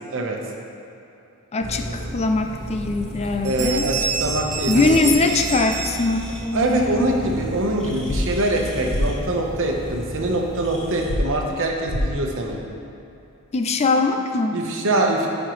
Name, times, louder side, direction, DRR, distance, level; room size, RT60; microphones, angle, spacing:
voice 1, 1.5-3.9 4.7-7.3 13.5-14.6, left 3 dB, 30° left, 5 dB, 0.4 m, -22 dB
sound 1, 1.6-11.1, equal, 5° left, 1.4 m, -34 dB
sound 2, 3.1-3.2 3.4-6.6, right 6 dB, 90° right, 1.2 m, -29 dB
voice 2, 3.4-5.0 6.5-12.6 14.5-15.3, right 1 dB, 60° right, 1 dB, 1.0 m, -23 dB
sound 3, 8.1-8.2 8.9-9.0 11.1-11.2 11.9-12.0, left 1 dB, 50° left, 0.8 m, -24 dB
13.0 x 5.7 x 3.1 m, 2.9 s
head